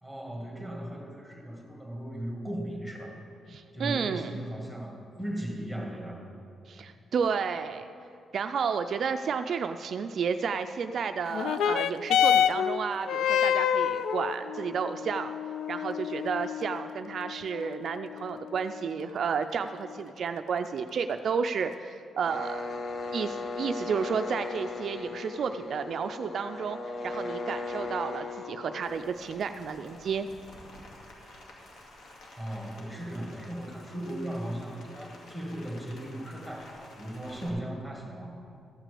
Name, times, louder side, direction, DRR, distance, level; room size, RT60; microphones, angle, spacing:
voice 1, 0.0-3.2 3.7-6.3 32.4-38.3, right 1 dB, 5° left, 0 dB, 1.9 m, -37 dB
voice 2, 3.5-4.4 6.7-7.9 8.3-15.3 15.7-22.7 23.1-30.3, right 6 dB, 50° right, 8 dB, 0.3 m, -32 dB
sound 1, 11.3-20.3 21.1-21.2, left 9 dB, 90° left, 0.4 m, -29 dB
sound 2, 22.2-30.0, left 3 dB, 40° left, 0.9 m, -37 dB
Rain, 28.8-37.5, left 1 dB, 65° left, 2.3 m, -51 dB
14.0 x 6.0 x 8.4 m, 2.7 s
cardioid pair, 165°, 0 cm